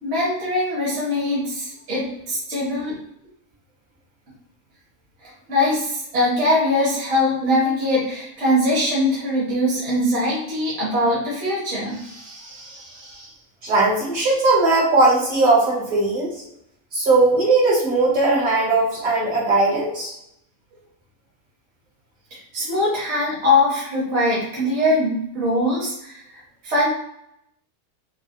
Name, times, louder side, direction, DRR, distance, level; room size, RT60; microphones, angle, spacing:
voice 1, 0.0-2.9 5.2-13.3 22.5-26.9, left 1 dB, 50° right, -6 dB, 1.5 m, -22 dB
voice 2, 13.6-16.4 16.9-20.1, right 2 dB, 65° right, -6 dB, 2.1 m, -18 dB
5.4 x 2.3 x 2.6 m, 0.79 s
omnidirectional pair, 1.6 m